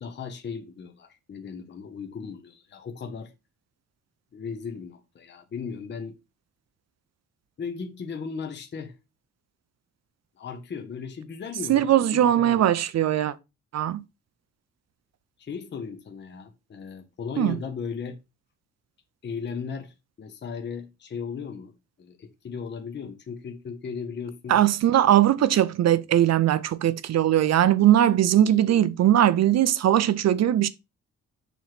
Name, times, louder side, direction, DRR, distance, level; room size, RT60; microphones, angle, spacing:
voice 1, 0.0-3.3 4.3-6.2 7.6-9.0 10.4-12.6 15.4-18.2 19.2-21.7 22.0-24.6, left 6 dB, 35° left, 0.8 m, -36 dB
voice 2, 11.7-13.3 13.7-14.0 17.4-17.5 24.5-30.7, right 11 dB, 60° right, 0.6 m, -20 dB
7.0 x 3.1 x 5.8 m
wide cardioid pair, 160°, 30 cm